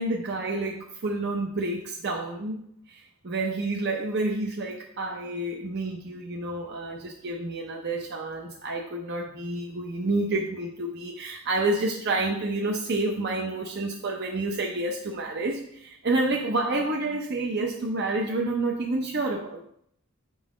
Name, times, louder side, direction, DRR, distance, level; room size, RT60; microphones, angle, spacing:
voice 1, 0.0-2.6 2.9-19.6, right 2 dB, 55° right, 0 dB, 0.7 m, -29 dB
6.2 x 3.8 x 4.9 m, 0.70 s
head